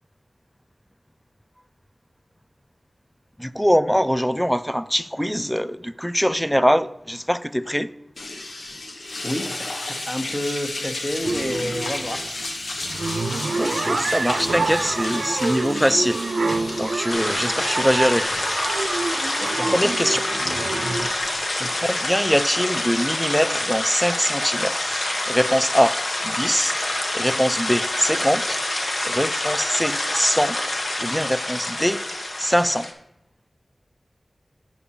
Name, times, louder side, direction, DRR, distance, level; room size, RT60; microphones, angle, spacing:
voice 1, 3.4-7.9 13.6-16.2 16.8-18.3 19.7-20.2 21.8-26.0 26.2-26.8 27.1-28.6 29.0-30.6 31.0-32.0 32.4-32.9, equal, ahead, 0.3 m, -22 dB
sound 1, 8.2-21.7, left 2 dB, 90° left, 1.0 m, -33 dB
voice 2, 9.2-12.2 17.2-17.5 19.4-19.9 21.6-21.8, left 1 dB, 35° left, 1.1 m, -30 dB
sound 2, 11.2-21.1, right 3 dB, 90° right, 0.5 m, -27 dB
sound 3, 17.1-32.9, left 1 dB, 65° left, 1.1 m, -26 dB
8.5 x 6.0 x 4.2 m
wide cardioid pair, 70°, 0 cm